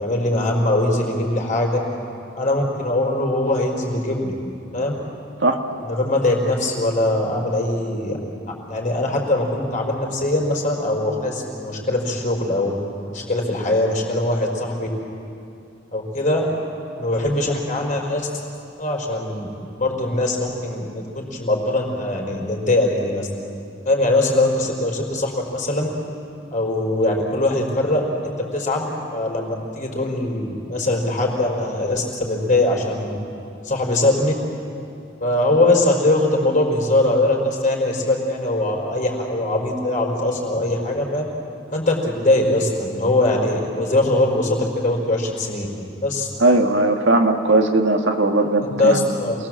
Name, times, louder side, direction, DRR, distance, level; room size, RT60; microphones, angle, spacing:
voice 1, 0.0-1.8 2.3-4.4 4.7-4.9 5.8-8.2 8.7-12.8 13.1-14.9 15.9-16.5 17.0-18.3 18.8-19.5 19.8-20.4 20.6-23.3 23.8-25.9 26.5-33.2 33.6-34.3 35.2-41.2 41.7-45.7 46.0-46.3 48.6-49.3, left 1 dB, 40° left, 0 dB, 4.6 m, -21 dB
voice 2, 46.4-49.1, right 2 dB, 70° right, 4 dB, 1.7 m, -18 dB
28.0 x 20.5 x 7.6 m, 2.6 s
head